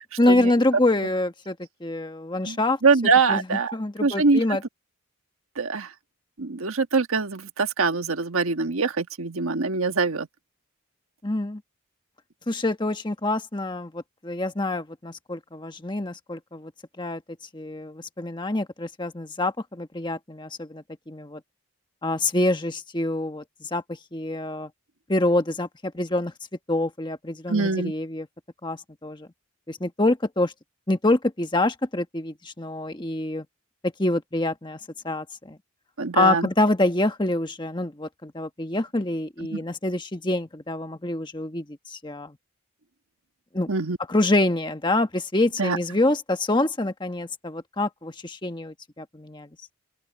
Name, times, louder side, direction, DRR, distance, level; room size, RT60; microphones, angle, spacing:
voice 1, 0.2-2.8 3.3-4.6 11.2-11.6 12.5-16.7 17.0-17.2 17.5-21.4 22.0-23.8 24.1-24.7 25.1-26.3 26.7-28.3 28.6-29.3 29.7-30.5 30.9-33.5 33.8-34.8 35.0-35.6 36.1-42.4 43.5-43.7 44.1-49.5, left 2 dB, 20° left, 1.3 m, -26 dB
voice 2, 2.8-3.7 4.0-4.4 5.6-5.9 6.4-10.3 27.5-27.9 36.0-36.5 39.5-39.6 43.7-44.0 45.6-45.8, right 4 dB, 75° right, 1.4 m, -23 dB
open air
head